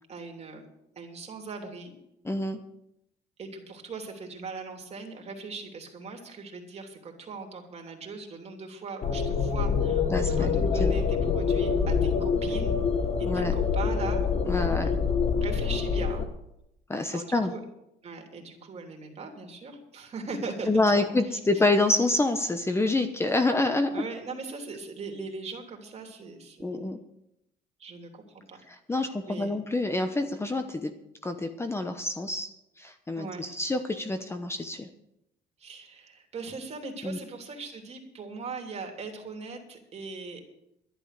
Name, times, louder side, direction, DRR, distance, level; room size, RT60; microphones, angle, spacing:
voice 1, 0.1-0.7 0.9-1.9 3.4-12.7 13.2-14.2 14.5-14.6 15.4-16.2 17.1-17.6 18.0-21.4 23.9-26.9 27.8-28.6 28.9-29.6 33.1-33.5 35.6-40.5, right 4 dB, 40° right, 2 dB, 3.2 m, -40 dB
voice 2, 2.2-2.6 10.1-11.0 13.3-13.5 14.5-14.9 16.9-17.5 20.7-23.9 26.6-27.0 28.7-30.9 31.2-32.5 32.8-34.9 37.0-37.2, left 2 dB, 15° left, 7 dB, 1.0 m, -27 dB
sound 1, 9.0-16.2, left 5 dB, 40° left, 1.4 m, -26 dB
12.0 x 11.0 x 6.7 m, 0.82 s
cardioid pair, 110°, 17 cm